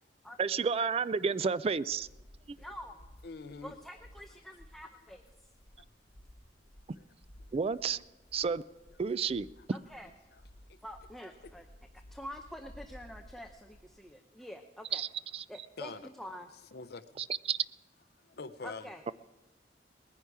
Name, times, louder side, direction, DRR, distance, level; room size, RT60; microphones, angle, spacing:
voice 1, 0.4-2.1 2.5-2.6 7.5-8.0 8.3-8.6 9.0-9.5 14.9-15.4 17.2-17.6, right 5 dB, 35° right, 0.3 m, -31 dB
sound 1, 1.7-14.0, equal, 30° left, 4.9 m, -56 dB
voice 2, 2.6-3.0 3.6-5.2 9.7-10.1 10.8-11.7 12.1-15.0 15.5-16.5 18.6-19.0, equal, ahead, 0.6 m, -46 dB
voice 3, 3.2-3.7 5.1-5.2 5.8-5.9 7.0-7.1 7.9-8.0 9.6-9.7 10.3-10.4 10.7-10.8 11.4-11.5 15.8-16.1 16.7-17.2 18.2-18.9, left 3 dB, 60° left, 0.7 m, -45 dB
20.5 x 10.0 x 4.8 m
head